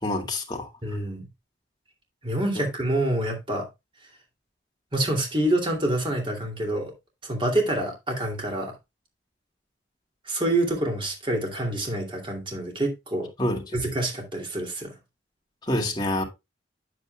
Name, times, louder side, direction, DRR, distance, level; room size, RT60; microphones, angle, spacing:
voice 1, 0.0-0.7 2.6-2.7 13.4-13.8 15.6-16.2, left 1 dB, 25° left, 2.0 m, -27 dB
voice 2, 0.8-1.3 2.2-3.7 4.9-6.9 7.2-8.8 10.3-13.3 13.7-14.9, right 1 dB, 30° right, 2.5 m, -27 dB
9.4 x 7.9 x 2.2 m
head